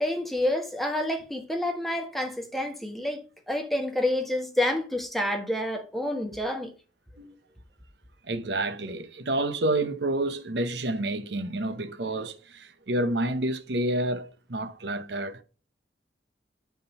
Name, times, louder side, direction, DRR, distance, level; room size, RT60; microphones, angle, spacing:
voice 1, 0.0-3.2 3.5-6.7, left 1 dB, ahead, 1.3 m, -28 dB
voice 2, 8.2-15.4, right 1 dB, 65° right, 0.9 m, -29 dB
9.3 x 3.8 x 5.4 m
head